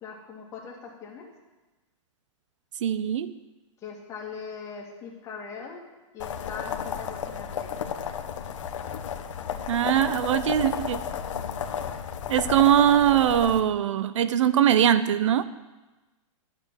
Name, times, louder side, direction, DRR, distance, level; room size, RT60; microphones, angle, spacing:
voice 1, 0.0-1.3 3.8-5.8 6.1-7.8, left 5 dB, 20° left, -2 dB, 2.4 m, -40 dB
voice 2, 2.8-3.3 9.7-11.0 12.3-15.4, right 10 dB, 65° right, 14 dB, 0.6 m, -21 dB
sound 1, 6.2-13.6, left 8 dB, 65° left, 1.3 m, -33 dB
12.0 x 8.2 x 9.1 m, 1.1 s
hypercardioid pair, 165°, 17 cm